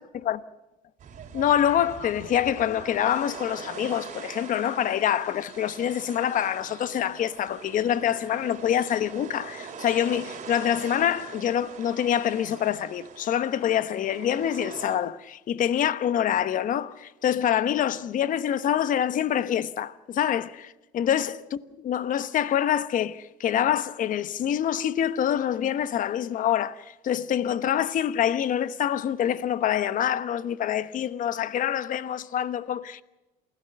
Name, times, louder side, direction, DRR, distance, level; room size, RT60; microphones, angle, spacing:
sound 1, 1.0-15.0, right 6 dB, 45° right, 4.6 m, -42 dB
voice 1, 1.3-33.0, left 10 dB, 50° left, 1.2 m, -26 dB
28.0 x 16.5 x 6.6 m
cardioid pair, 115°, 17 cm